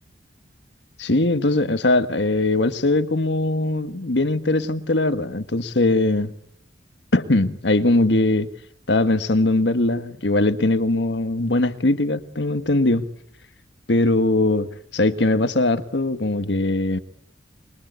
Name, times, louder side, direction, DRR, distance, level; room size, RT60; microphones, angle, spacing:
voice 1, 1.0-6.3 7.1-8.5 8.9-13.0 13.9-17.0, left 2 dB, 75° left, 11 dB, 1.5 m, -20 dB
26.0 x 22.0 x 8.2 m, 0.76 s
head